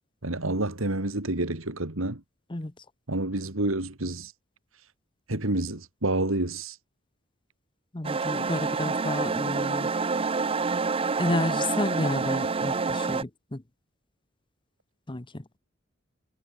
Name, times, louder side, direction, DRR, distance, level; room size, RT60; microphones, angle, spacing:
voice 1, 0.2-2.2 3.1-4.3 5.3-6.8, right 2 dB, 70° right, 2.6 m, -28 dB
voice 2, 2.5-2.8 7.9-9.9 11.2-13.6 15.1-15.5, left 2 dB, 25° left, 1.1 m, -31 dB
sound 1, 8.0-13.2, right 4 dB, 25° right, 0.6 m, -27 dB
head